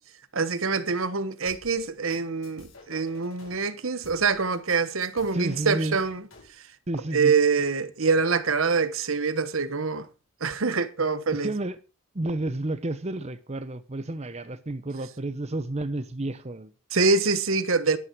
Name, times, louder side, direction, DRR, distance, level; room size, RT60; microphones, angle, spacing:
voice 1, 0.3-6.2 7.1-10.1 10.4-11.5 16.9-18.0, right 4 dB, 70° right, 1.1 m, -25 dB
sound 1, 1.5-3.6 4.0-6.5, left 2 dB, 70° left, 6.7 m, -51 dB
voice 2, 5.3-6.0 6.9-7.3 11.3-11.8 12.1-16.7, right 2 dB, 30° right, 0.7 m, -31 dB
12.0 x 11.0 x 4.6 m
head